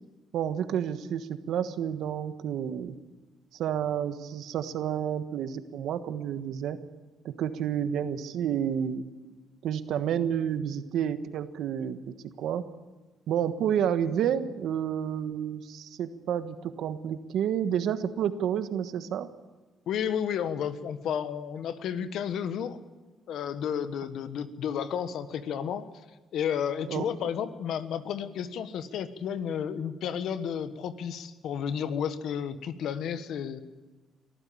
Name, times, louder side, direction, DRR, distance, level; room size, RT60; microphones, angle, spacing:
voice 1, 0.3-2.9 3.5-6.8 7.2-9.0 9.6-12.6 13.3-19.3 26.8-27.0, right 9 dB, 80° right, 10 dB, 1.3 m, -30 dB
voice 2, 19.9-22.8 23.3-25.9 26.3-33.6, left 8 dB, 75° left, 11 dB, 1.3 m, -32 dB
23.0 x 14.5 x 8.6 m, 1.2 s
cardioid pair, 90°, 0 cm